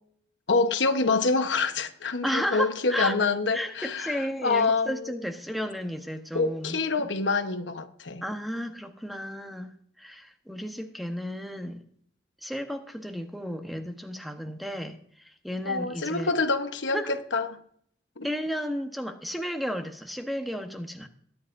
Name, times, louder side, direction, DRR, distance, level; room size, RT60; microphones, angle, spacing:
voice 1, 0.5-5.0 6.3-8.2 15.7-17.0 17.3-17.5 18.2-18.3, left 4 dB, 85° left, 1.1 m, -26 dB
voice 2, 2.2-7.1 8.2-9.7 10.0-11.8 12.4-16.3 16.9-17.1 18.2-21.1, equal, ahead, 1.0 m, -33 dB
21.5 x 9.9 x 2.6 m
head